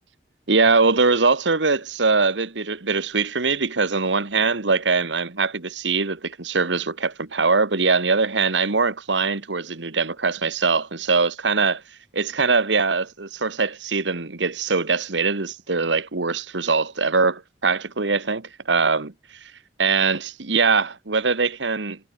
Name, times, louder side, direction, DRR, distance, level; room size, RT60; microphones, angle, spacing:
voice 1, 0.5-11.8 12.1-19.4 19.8-22.0, right 4 dB, 85° right, 1.6 m, -22 dB
head